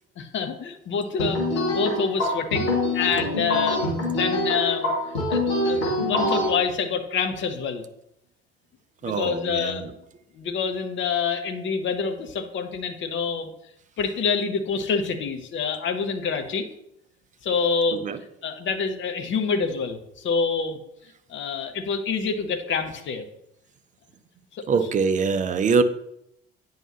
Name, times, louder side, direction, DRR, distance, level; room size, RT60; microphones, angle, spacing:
voice 1, 0.2-7.8 9.0-9.9 10.3-13.5 14.0-16.7 17.4-18.0 18.4-20.8 21.3-23.2 24.5-24.8, left 5 dB, 40° left, 8 dB, 1.0 m, -27 dB
sound 1, 1.2-6.5, left 1 dB, 70° left, 2.3 m, -25 dB
voice 2, 9.0-9.9 17.9-18.2 24.7-25.8, right 5 dB, 25° right, 10 dB, 0.6 m, -23 dB
9.0 x 5.6 x 2.9 m, 0.79 s
figure-of-eight pair, 60°, 31 cm